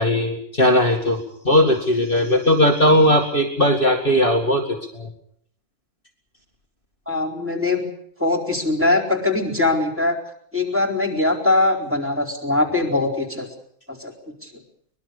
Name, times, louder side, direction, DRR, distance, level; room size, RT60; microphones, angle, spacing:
voice 1, 0.0-5.1, left 1 dB, 35° left, 1 dB, 2.4 m, -18 dB
voice 2, 7.1-7.9 8.2-10.2 10.5-13.5 13.9-14.1 14.4-14.5, left 2 dB, 10° right, -2 dB, 4.3 m, -21 dB
24.0 x 21.0 x 6.7 m, 0.66 s
omnidirectional pair, 1.6 m